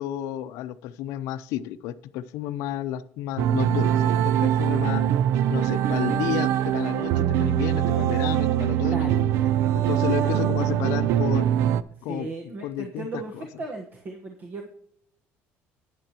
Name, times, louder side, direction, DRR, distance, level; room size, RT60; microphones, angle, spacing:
voice 1, 0.0-5.0 5.5-9.3 9.7-11.5 12.0-13.4, left 12 dB, 80° left, 13 dB, 0.6 m, -31 dB
sound 1, 3.4-11.8, right 11 dB, 70° right, 0.4 m, -23 dB
voice 2, 8.9-9.2 10.1-10.4 12.0-14.7, right 3 dB, 40° right, 3 dB, 1.2 m, -36 dB
12.0 x 9.6 x 2.9 m, 0.72 s
cardioid pair, 130°, 5 cm